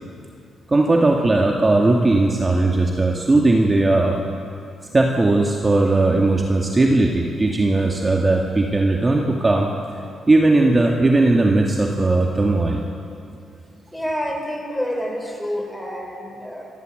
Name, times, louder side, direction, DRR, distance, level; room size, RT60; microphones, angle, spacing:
voice 1, 0.7-4.2 4.9-9.7 10.3-12.8, right 2 dB, 25° right, 0 dB, 2.0 m, -18 dB
voice 2, 13.9-16.7, equal, 5° left, 2 dB, 5.2 m, -28 dB
27.0 x 13.0 x 7.9 m, 2.5 s
cardioid pair, 70°, 0 cm